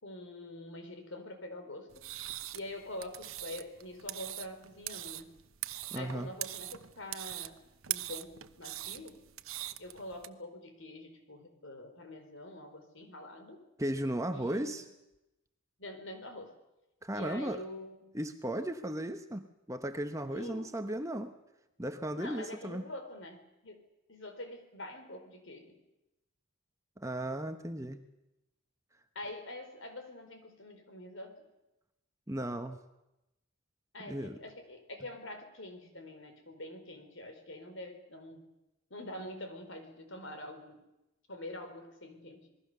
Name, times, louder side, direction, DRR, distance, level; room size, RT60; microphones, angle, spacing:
voice 1, 0.0-2.1 2.5-5.3 5.9-7.6 7.9-9.2 9.8-13.6 14.3-14.8 15.8-16.5 17.1-18.1 20.3-20.7 22.2-23.8 24.1-25.8 29.1-31.5 33.9-38.5 38.9-40.8 41.3-42.5, left 1 dB, 60° left, 7 dB, 4.3 m, -45 dB
sound 1, 1.9-10.3, right 14 dB, 75° right, 1.0 m, -42 dB
voice 2, 5.9-6.3 13.8-14.8 17.0-17.6 18.1-21.3 21.8-22.8 27.0-28.0 32.3-32.8 34.1-34.4, right 1 dB, 15° right, 7 dB, 1.0 m, -36 dB
27.5 x 20.5 x 6.8 m, 0.93 s
head